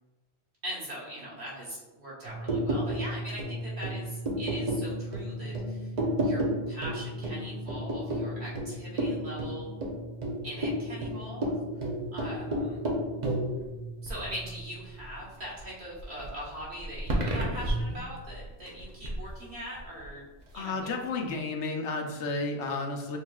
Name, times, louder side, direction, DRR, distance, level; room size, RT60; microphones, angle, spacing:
voice 1, 0.6-5.9 6.2-9.7 10.4-11.5 12.1-12.8 14.0-20.2 20.5-20.9 22.4-22.5, equal, 65° right, -7 dB, 1.8 m, -41 dB
sound 1, 2.2-15.6 16.0-19.3 19.8-20.1, right 1 dB, 45° right, 0.8 m, -32 dB
voice 2, 20.5-23.2, left 3 dB, 85° left, 2 dB, 1.0 m, -32 dB
6.5 x 3.1 x 2.3 m, 1.2 s
omnidirectional pair, 1.2 m